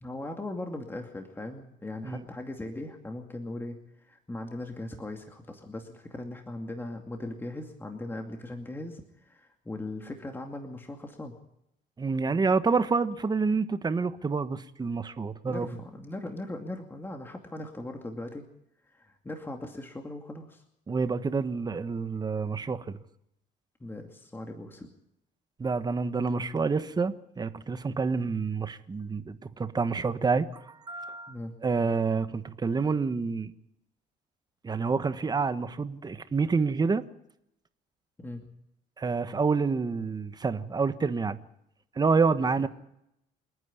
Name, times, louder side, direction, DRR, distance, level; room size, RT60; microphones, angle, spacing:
voice 1, 0.0-11.3 15.4-18.5 18.9-20.6 23.8-24.9 31.3-31.5 38.2-38.5 42.6-42.7, left 2 dB, 15° left, 2.4 m, -39 dB
voice 2, 12.0-15.7 20.9-23.0 25.6-31.4 31.6-33.5 34.6-37.0 39.0-41.4 42.0-42.7, right 4 dB, 25° right, 1.3 m, -28 dB
28.0 x 9.6 x 9.8 m
cardioid pair, 110°, 17 cm